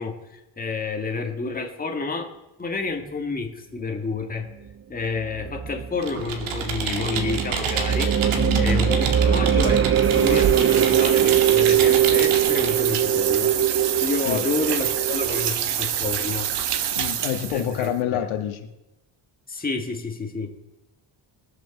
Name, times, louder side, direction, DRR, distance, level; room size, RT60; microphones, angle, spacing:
voice 1, 0.0-2.3 2.6-4.5 4.9-8.1 8.6-16.5 17.5-18.2 19.5-20.5, left 4 dB, 20° left, 2 dB, 1.9 m, -29 dB
sound 1, 5.2-15.5, right 9 dB, 30° right, 0.5 m, -22 dB
Computer keyboard, 6.0-12.8, right 5 dB, 85° right, 2.3 m, -30 dB
voice 2, 8.4-8.8 14.2-14.4 16.9-18.6, left 10 dB, 85° left, 6 dB, 1.7 m, -27 dB
sound 2, 10.0-17.9, right 10 dB, 60° right, 1.2 m, -27 dB
21.0 x 7.7 x 7.1 m, 0.93 s
cardioid pair, 135°, 47 cm